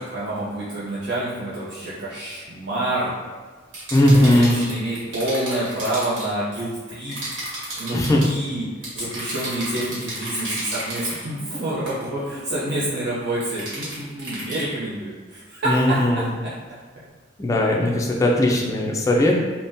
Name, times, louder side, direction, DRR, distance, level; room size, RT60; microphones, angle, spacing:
voice 1, 0.1-3.1 4.2-7.2 7.8-8.7 8.9-16.1, right 1 dB, 60° right, -9 dB, 0.6 m, -27 dB
sound 1, 3.7-6.3 7.1-8.3 8.8-11.3 11.9-12.1 13.4-14.6, right 1 dB, 80° right, 1.1 m, -33 dB
voice 2, 3.9-4.6 7.9-8.2 15.7-16.2 17.4-19.4, left 1 dB, 15° left, -1 dB, 0.3 m, -18 dB
3.5 x 2.1 x 2.6 m, 1.5 s
head